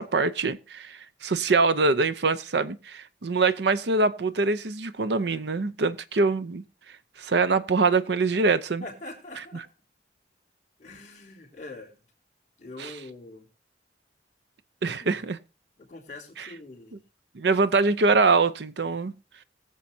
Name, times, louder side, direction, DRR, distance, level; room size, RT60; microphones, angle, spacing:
voice 1, 0.0-6.6 7.2-8.8 9.5-9.6 12.8-12.9 14.8-15.4 16.4-16.5 17.3-19.1, right 3 dB, 70° right, 0.7 m, -24 dB
voice 2, 8.8-9.7 10.8-11.9 12.6-13.5 15.0-15.2 15.8-17.0, left 2 dB, 40° left, 3.5 m, -43 dB
21.0 x 7.4 x 2.7 m
head